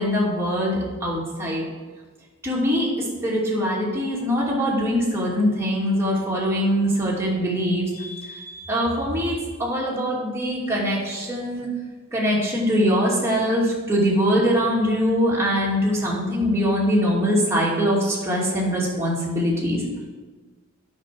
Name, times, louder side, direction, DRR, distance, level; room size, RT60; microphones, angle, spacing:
voice 1, 0.0-1.6 2.4-11.7 12.1-19.8, equal, 15° right, -5 dB, 2.6 m, -23 dB
9.0 x 6.3 x 6.3 m, 1.4 s
head